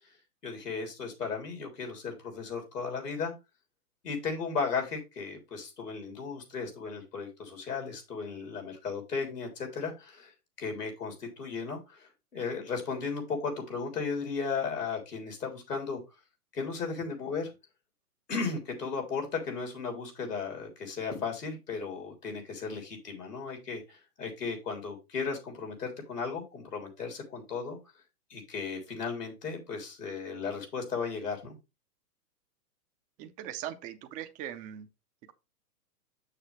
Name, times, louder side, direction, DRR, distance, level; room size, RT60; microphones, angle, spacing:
voice 1, 0.4-3.3 4.0-10.3 10.6-16.0 16.5-17.5 18.3-27.8 28.3-31.6, left 5 dB, 90° left, 3.8 m, -35 dB
voice 2, 33.2-34.9, right 11 dB, 15° right, 0.6 m, -40 dB
7.1 x 6.6 x 3.4 m
hypercardioid pair, 130°, 46 cm